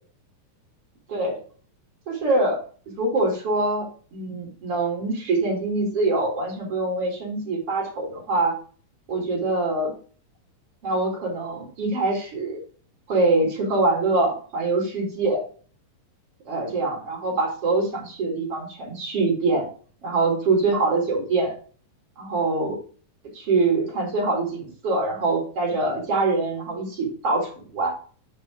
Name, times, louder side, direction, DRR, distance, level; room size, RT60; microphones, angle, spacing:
voice 1, 1.1-1.4 2.1-2.6 3.0-8.5 9.1-9.9 10.8-12.6 13.1-15.4 16.4-19.7 20.0-21.5 22.2-22.8 23.3-27.9, right 3 dB, 45° right, -1 dB, 3.9 m, -24 dB
6.6 x 5.5 x 5.0 m, 0.41 s
omnidirectional pair, 3.8 m